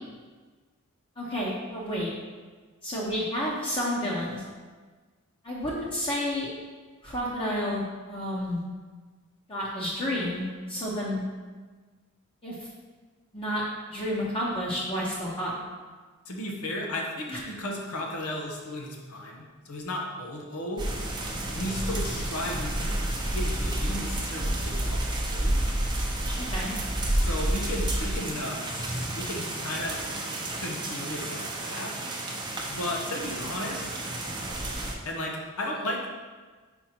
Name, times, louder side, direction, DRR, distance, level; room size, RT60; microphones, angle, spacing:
voice 1, 1.2-2.1 2.8-4.4 5.4-6.5 7.0-8.6 9.5-11.2 12.4-12.6 13.3-15.5 17.3-17.4 26.4-26.7, equal, 25° left, -6 dB, 0.9 m, -30 dB
voice 2, 16.3-20.9 21.5-25.6 27.2-30.0 30.6-31.9 32.7-34.0 35.0-36.1, left 1 dB, 85° left, 0 dB, 1.0 m, -35 dB
sound 1, 20.8-34.9, right 1 dB, 20° right, 0.7 m, -30 dB
5.2 x 4.4 x 4.4 m, 1.4 s
head